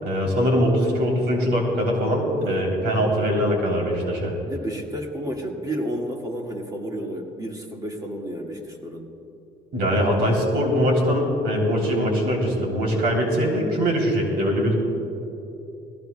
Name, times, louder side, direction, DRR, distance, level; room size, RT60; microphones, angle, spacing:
voice 1, 0.0-4.3 9.7-14.7, equal, 85° right, 0 dB, 3.3 m, -22 dB
voice 2, 2.4-2.7 4.5-9.1, right 1 dB, 20° right, 1 dB, 1.8 m, -31 dB
20.0 x 16.5 x 2.3 m, 2.9 s
cardioid pair, 110°, 17 cm